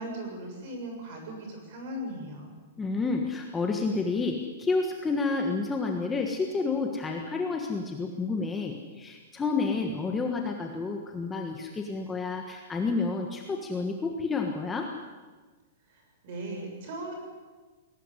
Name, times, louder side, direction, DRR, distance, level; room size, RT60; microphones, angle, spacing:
voice 1, 0.0-2.6 15.9-17.1, right 1 dB, 40° right, 3 dB, 7.0 m, -38 dB
voice 2, 2.8-14.9, left 4 dB, 10° left, 2 dB, 1.4 m, -30 dB
21.5 x 17.5 x 9.9 m, 1.3 s
supercardioid pair, 175°, 0 cm